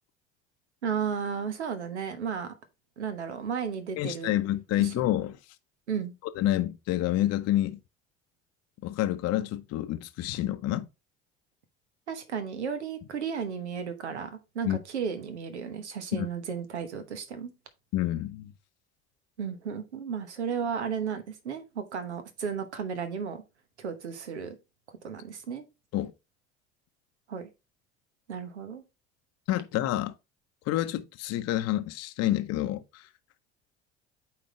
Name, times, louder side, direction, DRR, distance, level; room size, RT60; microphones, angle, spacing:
voice 1, 0.8-2.5 3.0-4.3 4.8-4.9 5.9-6.1 12.1-17.5 19.4-23.4 23.8-24.5 25.0-25.6 27.3-27.5 28.3-28.8, right 6 dB, 85° right, 1.1 m, -34 dB
voice 2, 4.0-5.4 6.4-7.8 8.8-10.9 14.6-14.8 16.1-16.3 17.9-18.5 25.9-26.1 29.5-30.1 30.7-33.1, left 14 dB, 50° left, 0.7 m, -28 dB
8.8 x 4.3 x 3.1 m
hypercardioid pair, 65°, 33 cm